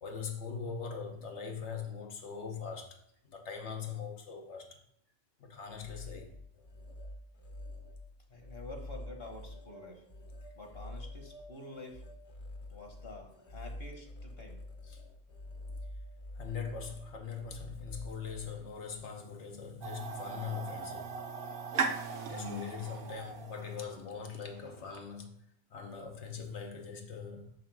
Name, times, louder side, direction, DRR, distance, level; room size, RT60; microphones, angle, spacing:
voice 1, 0.0-3.0 3.2-4.8 5.4-6.4 14.9-15.0 16.3-21.1 22.3-25.3 25.7-27.6, left 6 dB, 90° left, 1.2 m, -41 dB
sound 1, 5.6-19.0, left 1 dB, 35° left, 0.7 m, -47 dB
voice 2, 8.3-10.0 10.5-12.1 12.7-14.6, left 2 dB, 60° left, 1.3 m, -48 dB
sound 2, 19.8-24.8, right 4 dB, 60° right, 0.9 m, -38 dB
5.8 x 3.6 x 5.9 m
omnidirectional pair, 1.1 m